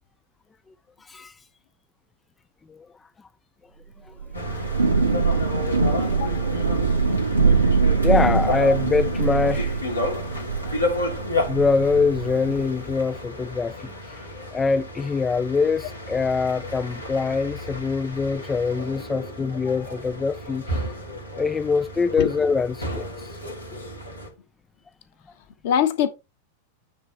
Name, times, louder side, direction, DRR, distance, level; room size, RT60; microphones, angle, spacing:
voice 1, 1.0-1.4 2.7-2.9 3.2-3.3 4.0-4.1 8.0-9.8 11.5-20.9 21.4-23.4, left 4 dB, 15° left, 0.3 m, -24 dB
Thunder / Rain, 4.2-12.8, right 4 dB, 80° right, 0.9 m, -23 dB
sound 1, 4.3-24.3, left 1 dB, 85° left, 2.7 m, -32 dB
voice 2, 6.1-6.5 22.2-22.3 25.6-26.1, left 9 dB, 55° left, 1.4 m, -23 dB
9.4 x 4.2 x 4.3 m
figure-of-eight pair, 90°, 0 cm